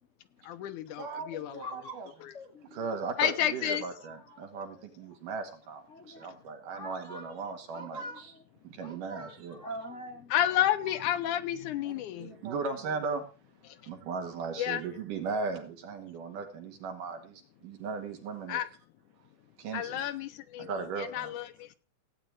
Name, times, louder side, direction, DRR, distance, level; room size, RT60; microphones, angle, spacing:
voice 1, 0.4-1.7 2.2-2.3 3.2-3.8 10.3-12.4 13.7-13.8 14.6-14.8 18.5-18.7 19.7-21.7, left 11 dB, 75° left, 2.2 m, -31 dB
voice 2, 1.0-2.1 2.7-8.0 8.6-9.6 11.9-13.3 13.9-18.6 19.6-20.0 20.6-21.4, right 4 dB, 80° right, 3.5 m, -37 dB
voice 3, 1.6-2.0 2.3-2.9 3.2-3.3 4.0-4.9 5.9-6.3 6.7-7.4 7.7-8.4 8.8-10.6, equal, 45° left, 0.9 m, -45 dB
16.5 x 9.1 x 4.7 m
omnidirectional pair, 3.8 m